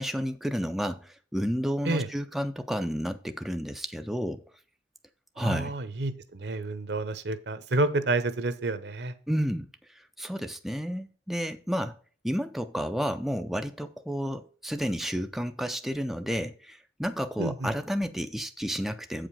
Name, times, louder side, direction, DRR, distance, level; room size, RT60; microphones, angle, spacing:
voice 1, 0.0-4.4 5.4-5.7 9.3-12.0 12.2-19.3, equal, ahead, 0.4 m, -31 dB
voice 2, 5.4-9.1 17.4-17.7, right 2 dB, 65° right, 0.8 m, -29 dB
8.1 x 5.1 x 5.5 m
head